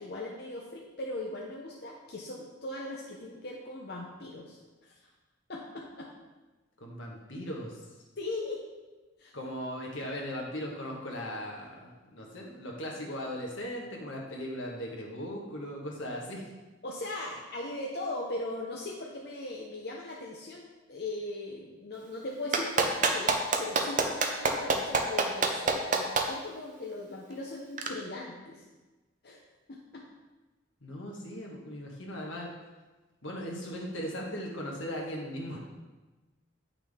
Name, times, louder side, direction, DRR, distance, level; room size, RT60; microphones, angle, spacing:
voice 1, 0.0-5.0 5.5-6.1 8.2-8.6 9.2-9.3 16.8-28.6 29.2-29.4 29.7-30.1, left 2 dB, 55° left, -2 dB, 0.8 m, -39 dB
voice 2, 6.8-7.8 9.3-16.5 30.8-32.5 33.2-35.6, equal, 85° left, -1 dB, 1.6 m, -38 dB
Clapping, 22.5-26.2 27.8-27.9, right 4 dB, 40° right, 0.7 m, -25 dB
8.5 x 5.9 x 3.6 m, 1.2 s
head